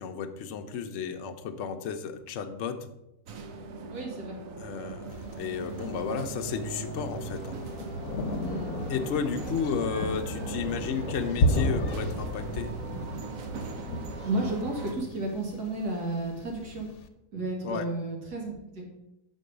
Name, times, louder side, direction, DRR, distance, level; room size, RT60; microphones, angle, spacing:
voice 1, 0.0-2.9 4.6-7.6 8.9-12.7 17.6-17.9, left 6 dB, 60° left, 6 dB, 0.8 m, -33 dB
sound 1, 3.3-14.9, right 4 dB, 60° right, 1.1 m, -38 dB
voice 2, 3.9-4.4 8.4-8.8 14.2-16.9 17.3-18.8, right 2 dB, 80° right, -1 dB, 2.3 m, -32 dB
Thunder, 5.1-17.0, left 1 dB, 75° left, 1.2 m, -34 dB
6.3 x 4.6 x 6.6 m, 0.88 s
omnidirectional pair, 1.7 m